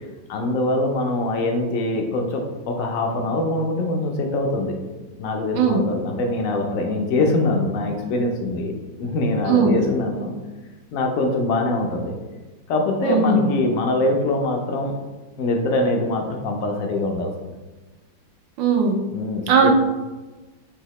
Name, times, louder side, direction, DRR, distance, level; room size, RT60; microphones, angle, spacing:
voice 1, 0.3-4.8 5.2-10.3 10.9-12.1 12.7-14.9 15.4-17.3 19.1-19.7, left 2 dB, 75° left, 2 dB, 0.7 m, -23 dB
voice 2, 9.4-9.8 13.0-13.5 18.6-18.9 19.5-19.7, right 5 dB, 85° right, 2 dB, 1.4 m, -18 dB
4.8 x 2.8 x 3.0 m, 1.2 s
omnidirectional pair, 2.0 m